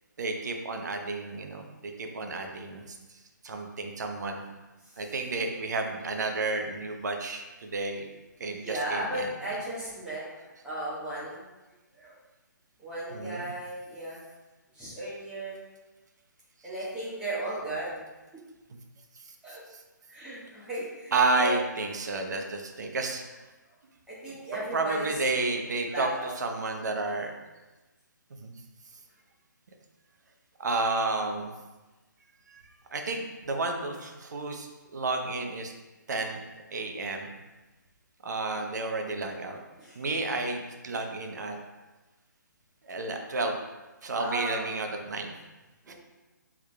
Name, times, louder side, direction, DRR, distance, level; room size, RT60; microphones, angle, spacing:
voice 1, 0.2-3.0 3.4-4.4 5.0-8.1 8.4-9.3 13.1-13.5 19.7-19.8 21.1-23.2 24.5-26.1 26.4-27.3 28.4-28.5 30.6-31.5 32.5-32.6 32.9-35.7 36.1-36.4 36.7-37.3 38.2-39.6 40.0-41.6 42.8-43.6 44.0-45.3 45.9-46.0, right 3 dB, 60° right, 3 dB, 0.7 m, -31 dB
voice 2, 8.4-11.4 11.9-12.2 12.8-14.2 14.7-15.6 16.6-18.1 19.4-19.6 20.1-21.5 22.0-22.2 24.1-25.2 25.8-26.3 39.8-40.0 44.2-44.7 45.8-45.9, right 1 dB, 5° right, -10 dB, 1.4 m, -36 dB
6.3 x 3.6 x 2.3 m, 1.1 s
figure-of-eight pair, 145°, 11 cm